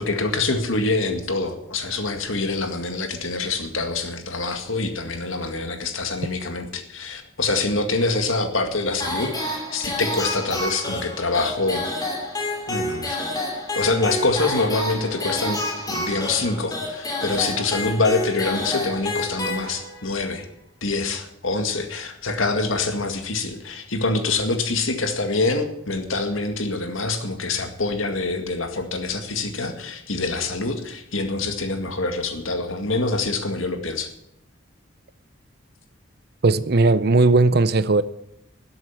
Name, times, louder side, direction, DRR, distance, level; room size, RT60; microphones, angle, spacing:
voice 1, 0.0-11.8 12.7-13.2 13.8-20.5 20.8-34.1, left 3 dB, 80° left, 2.1 m, -25 dB
sound 1, 9.0-20.1, left 1 dB, 20° left, 3.0 m, -29 dB
voice 2, 36.4-38.0, right 3 dB, 50° right, 0.6 m, -17 dB
13.0 x 8.0 x 9.7 m
head